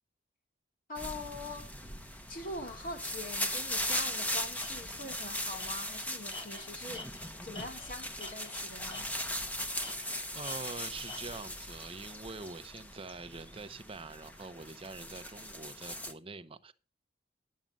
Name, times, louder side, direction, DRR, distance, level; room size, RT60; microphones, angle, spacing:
voice 1, 0.9-1.8 2.3-9.1, left 2 dB, 45° left, 2.4 m, -43 dB
sound 1, 1.0-16.1, left 1 dB, 10° left, 1.1 m, -39 dB
Tools, 4.1-4.2 4.6-4.7 5.1-5.3 5.6-8.6 8.9-9.4 9.8-11.4, left 3 dB, 25° left, 1.2 m, -49 dB
voice 2, 9.9-16.7, right 3 dB, 30° right, 0.8 m, -45 dB
10.5 x 7.4 x 5.3 m
head